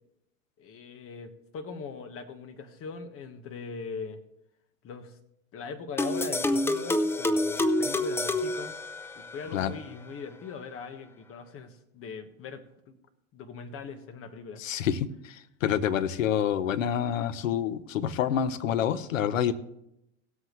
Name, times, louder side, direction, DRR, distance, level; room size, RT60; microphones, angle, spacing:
voice 1, 0.6-4.2 4.8-5.2 5.5-8.8 9.1-13.0 13.3-14.6, left 5 dB, 35° left, 9 dB, 1.4 m, -41 dB
sound 1, 6.0-9.4, left 1 dB, 5° left, 0.4 m, -27 dB
voice 2, 14.6-19.5, left 9 dB, 85° left, 14 dB, 0.9 m, -27 dB
17.5 x 8.0 x 3.1 m, 0.80 s
hypercardioid pair, 105°, 38 cm